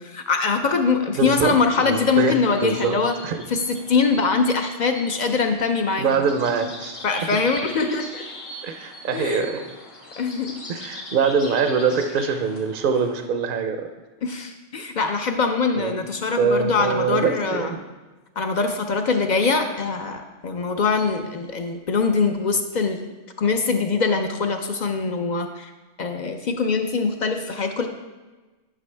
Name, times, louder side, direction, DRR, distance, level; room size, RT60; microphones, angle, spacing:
voice 1, 0.0-3.2 3.5-6.3 7.0-8.2 9.1-9.5 10.2-10.6 14.2-17.8 18.4-23.0 23.4-25.7 26.0-27.9, left 4 dB, 55° left, 6 dB, 0.5 m, -23 dB
voice 2, 1.2-1.5 1.8-2.3 2.6-3.0 3.2-3.4 6.0-7.0 7.3-7.4 8.6-9.7 10.7-13.9 15.8-16.0 16.4-17.8, right 6 dB, 55° right, 7 dB, 0.6 m, -23 dB
sound 1, 1.7-13.3, left 1 dB, 80° left, 1.9 m, -40 dB
11.0 x 6.1 x 3.3 m, 1.2 s
omnidirectional pair, 1.3 m